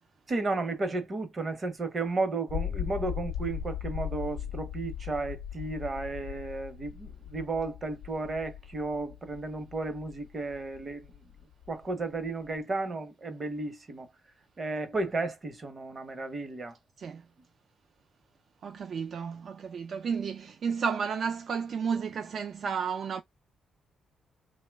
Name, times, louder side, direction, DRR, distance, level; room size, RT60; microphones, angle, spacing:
voice 1, 0.3-11.1 11.7-14.1 14.6-16.7, right 3 dB, 35° right, 0.8 m, -33 dB
sound 1, 2.5-12.6, left 9 dB, 80° left, 0.4 m, -39 dB
voice 2, 18.6-23.2, right 6 dB, 55° right, 0.3 m, -32 dB
2.9 x 2.1 x 3.3 m
cardioid pair, 105°, 0 cm